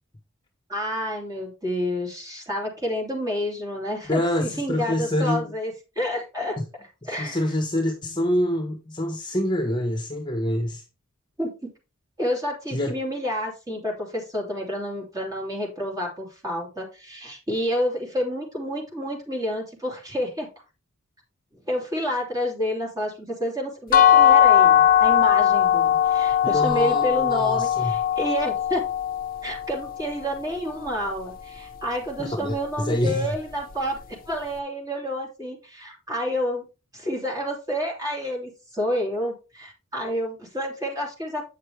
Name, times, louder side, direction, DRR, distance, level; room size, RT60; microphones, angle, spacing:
voice 1, 0.7-6.6 7.0-7.4 11.4-11.7 12.2-20.5 21.6-28.8 29.4-36.6 36.9-41.4, equal, 15° right, 3.0 m, -29 dB
voice 2, 4.1-5.5 7.2-10.8 12.7-12.9 26.4-27.9 32.2-33.3, left 1 dB, 20° left, 1.3 m, -26 dB
sound 1, 23.9-29.7, left 10 dB, 40° left, 0.9 m, -19 dB
8.6 x 6.5 x 3.4 m
head